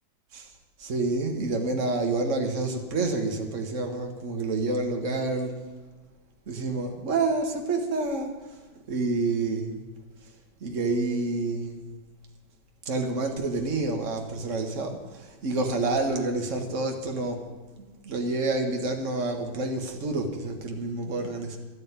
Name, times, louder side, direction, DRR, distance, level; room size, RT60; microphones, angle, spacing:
voice 1, 0.8-5.6 6.5-8.3 8.9-9.8 10.6-11.8 12.8-17.4 17.8-21.6, right 3 dB, 40° right, 3 dB, 1.1 m, -28 dB
12.5 x 8.7 x 9.6 m, 1.2 s
omnidirectional pair, 3.8 m